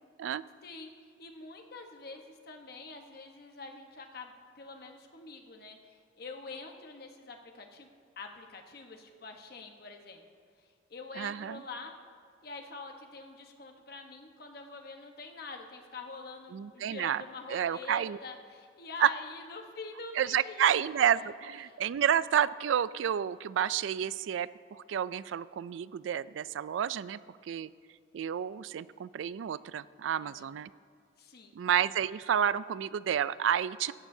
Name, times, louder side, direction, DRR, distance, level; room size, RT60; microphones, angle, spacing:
voice 1, 1.2-7.9 8.2-10.2 10.9-11.9 12.4-20.7 21.0-21.1 21.6-21.8 30.2-30.5 31.2-31.5, left 3 dB, 55° left, 4 dB, 1.1 m, -46 dB
voice 2, 11.2-11.6 16.5-17.2 17.5-18.2 19.0-19.1 20.2-27.7 28.1-30.7 31.6-33.9, right 9 dB, 85° right, 18 dB, 0.3 m, -30 dB
17.5 x 13.5 x 2.7 m, 2.1 s
head